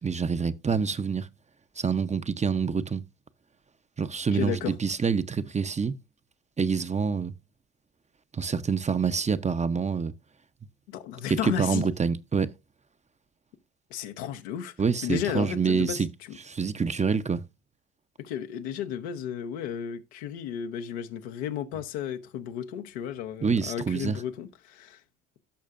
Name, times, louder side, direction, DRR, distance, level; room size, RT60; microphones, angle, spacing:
voice 1, 0.0-1.3 1.8-3.0 4.0-6.0 6.6-7.3 8.3-10.1 11.3-12.5 14.8-16.1 16.4-17.4 23.4-24.2, right 5 dB, 20° right, 0.7 m, -26 dB
voice 2, 4.3-4.7 10.9-11.9 13.9-14.7 15.0-16.0 18.2-25.0, left 9 dB, 80° left, 1.0 m, -33 dB
16.0 x 6.5 x 2.5 m
hypercardioid pair, 60°, 33 cm